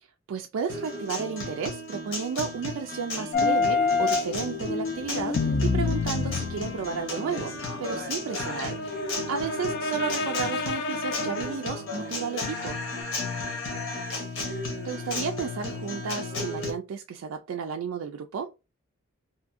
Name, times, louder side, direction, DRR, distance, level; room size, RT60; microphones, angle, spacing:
voice 1, 0.3-8.8 9.3-12.8 14.8-18.5, right 6 dB, 80° right, 0.3 m, -33 dB
Guitar, 0.7-16.7, left 2 dB, 75° left, 1.0 m, -34 dB
sound 1, 3.3-11.6 13.0-13.1, left 4 dB, 50° left, 0.3 m, -28 dB
2.7 x 2.5 x 2.4 m
head